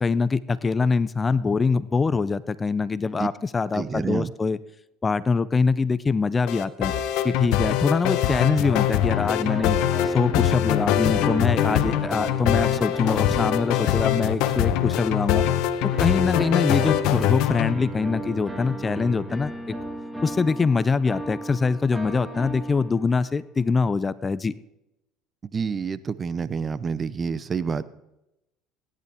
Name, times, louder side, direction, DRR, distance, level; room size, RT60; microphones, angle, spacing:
voice 1, 0.0-4.6 5.0-6.9 7.2-9.8 10.0-15.4 15.8-19.8 20.2-24.5, left 4 dB, 25° left, 18 dB, 0.5 m, -24 dB
voice 2, 3.7-4.3 25.5-27.8, right 6 dB, 30° right, 16 dB, 0.7 m, -28 dB
sound 1, 6.5-17.7, left 11 dB, 70° left, 1.0 m, -23 dB
sound 2, 9.1-14.9 15.9-23.3, right 1 dB, 10° right, 1.9 m, -35 dB
16.5 x 10.5 x 3.6 m, 0.88 s
supercardioid pair, 95°, 0 cm